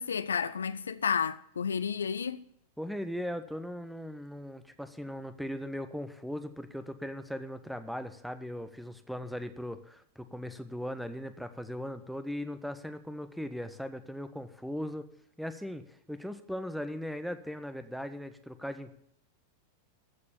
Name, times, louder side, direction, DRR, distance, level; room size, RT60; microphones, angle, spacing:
voice 1, 0.0-2.5, left 6 dB, 70° left, 0.6 m, -31 dB
voice 2, 2.8-15.1 15.4-18.9, equal, ahead, 1.2 m, -38 dB
14.5 x 6.7 x 10.0 m
figure-of-eight pair, 90°, 0 cm